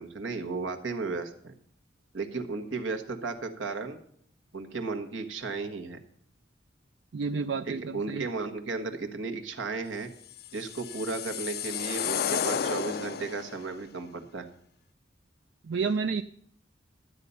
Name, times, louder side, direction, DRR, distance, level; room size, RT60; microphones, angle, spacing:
voice 1, 0.0-1.5 2.1-4.0 4.5-6.0 7.7-10.1 10.5-14.5, right 4 dB, 90° right, 5 dB, 1.5 m, -34 dB
voice 2, 7.1-8.3 15.6-16.2, right 5 dB, 65° right, 10 dB, 0.4 m, -30 dB
sound 1, 10.4-13.6, left 8 dB, 55° left, 0.4 m, -32 dB
12.5 x 8.3 x 5.6 m, 0.66 s
head